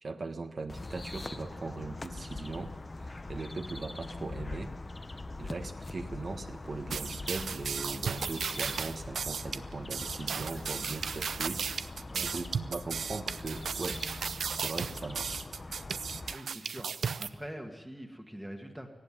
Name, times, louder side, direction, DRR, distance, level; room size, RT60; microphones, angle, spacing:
voice 1, 0.0-2.7 3.0-4.7 5.4-12.0 12.3-14.0 14.5-15.4, right 3 dB, 45° right, 5 dB, 1.4 m, -39 dB
sound 1, 0.7-16.3, left 2 dB, 25° left, 0.8 m, -42 dB
sound 2, 6.9-17.3, right 6 dB, 80° right, 0.7 m, -35 dB
voice 2, 16.3-18.9, equal, 5° right, 3 dB, 1.8 m, -44 dB
18.5 x 15.5 x 10.0 m, 1.2 s
wide cardioid pair, 125°, 0 cm